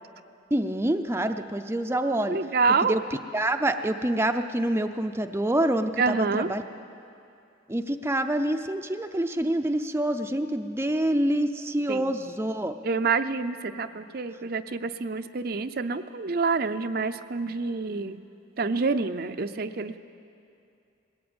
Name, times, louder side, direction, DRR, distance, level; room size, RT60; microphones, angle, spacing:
voice 1, 0.5-2.4 2.8-3.0 3.3-6.6 7.7-12.8, right 1 dB, 15° right, 6 dB, 0.5 m, -26 dB
voice 2, 2.3-2.9 6.0-6.5 11.9-12.1 12.8-18.2 18.6-20.0, right 4 dB, 55° right, 9 dB, 0.6 m, -27 dB
20.0 x 17.0 x 8.8 m, 2.6 s
head